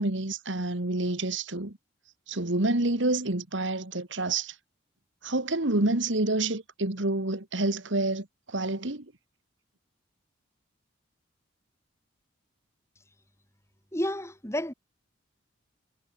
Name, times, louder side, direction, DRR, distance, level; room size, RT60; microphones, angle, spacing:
voice 1, 0.0-1.8 2.3-4.6 5.2-9.1, right 2 dB, 70° right, 2.1 m, -28 dB
voice 2, 13.9-14.7, left 1 dB, 15° left, 6.2 m, -30 dB
head